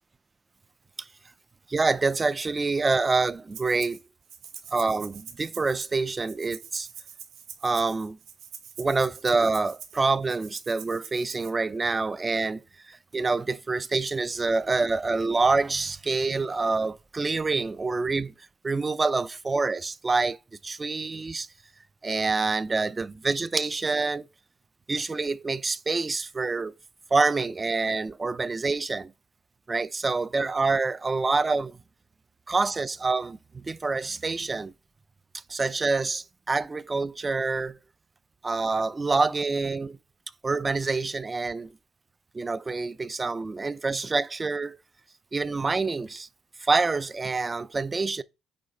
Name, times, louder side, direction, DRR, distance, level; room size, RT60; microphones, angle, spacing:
voice 1, 1.7-4.0 4.7-6.9 7.6-8.2 8.8-18.3 18.6-20.4 20.6-21.5 22.0-24.2 24.9-26.7 27.1-29.1 29.7-31.8 32.5-34.7 35.5-37.8 38.4-40.0 40.4-41.7 42.3-44.8 45.3-46.3 46.6-48.2, right 3 dB, 20° right, 0.4 m, -26 dB
Rattle (instrument), 3.5-4.0 4.3-11.5, right 8 dB, 70° right, 2.0 m, -45 dB
8.6 x 3.2 x 5.4 m
cardioid pair, 125°, 0 cm